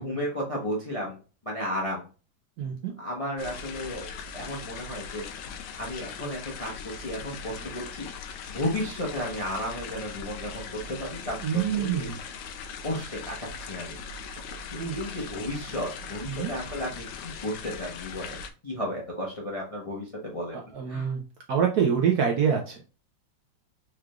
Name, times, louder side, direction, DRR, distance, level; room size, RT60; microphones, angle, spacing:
voice 1, 0.0-2.0 2.6-2.7 3.0-5.3 5.8-8.1 8.5-12.1 12.8-14.0 14.7-20.6 20.9-21.1, left 1 dB, 30° left, -2 dB, 0.6 m, -34 dB
voice 2, 2.6-2.9 11.4-12.2 14.8-15.0 16.3-16.5 20.5-21.2 21.5-22.8, right 7 dB, 65° right, 2 dB, 1.0 m, -26 dB
sound 1, 3.4-18.5, left 5 dB, 75° left, 1.2 m, -40 dB
4.8 x 3.2 x 2.3 m, 0.34 s
omnidirectional pair, 2.2 m